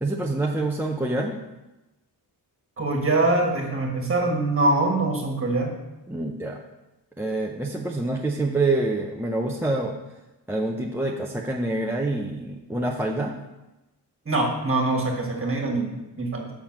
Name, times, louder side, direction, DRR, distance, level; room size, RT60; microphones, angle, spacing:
voice 1, 0.0-1.4 6.1-6.6 7.2-10.2 10.5-13.4, right 2 dB, 5° right, -1 dB, 0.6 m, -26 dB
voice 2, 2.8-5.7 14.3-16.5, right 2 dB, 30° right, 1 dB, 1.7 m, -24 dB
7.0 x 5.8 x 5.9 m, 1.0 s
wide cardioid pair, 135°, 41 cm